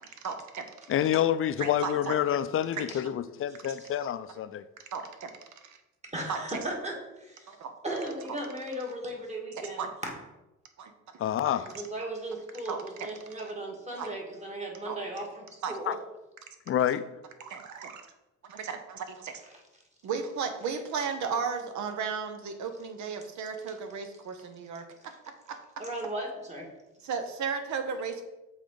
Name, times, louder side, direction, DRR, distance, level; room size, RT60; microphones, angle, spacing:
voice 1, 0.0-0.7 1.6-2.1 2.7-2.8 4.0-4.1 4.9-5.3 6.3-6.4 7.5-7.7 9.8-9.9 10.8-10.9 12.7-13.1 14.0-14.1 14.8-15.0 15.6-15.7 17.4-18.0 18.5-19.4 20.0-25.1 25.5-25.6 27.0-28.2, right 6 dB, 70° right, 7 dB, 0.9 m, -35 dB
voice 2, 0.9-4.6 11.2-11.7 15.9-16.0 16.7-17.1, left 10 dB, 45° left, 13 dB, 0.4 m, -28 dB
voice 3, 6.1-7.5 7.8-10.1 11.6-15.9 25.8-26.7, right 1 dB, 20° right, -1 dB, 1.8 m, -36 dB
7.2 x 3.9 x 3.9 m, 0.99 s
cardioid pair, 90°, 30 cm